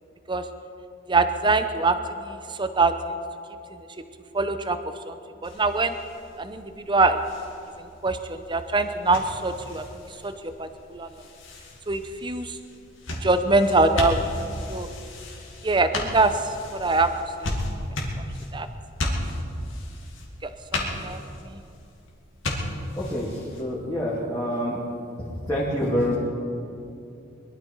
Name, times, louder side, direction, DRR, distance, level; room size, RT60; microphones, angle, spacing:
voice 1, 1.1-2.9 3.7-3.8 4.3-4.8 5.1-5.2 5.4-6.0 6.4-7.2 7.8-9.8 10.2-10.3 10.6-11.1 11.9-12.6 13.2-14.3 14.7-14.9 15.6-17.1 17.4-17.5 18.5-18.7 20.4-21.6, right 3 dB, 20° right, 9 dB, 0.7 m, -24 dB
sound 1, 5.4-23.6, left 1 dB, 65° left, 2.5 m, -35 dB
voice 2, 23.0-24.8 25.5-26.1, equal, 10° left, -9 dB, 2.7 m, -26 dB
22.5 x 12.5 x 4.7 m, 2.6 s
head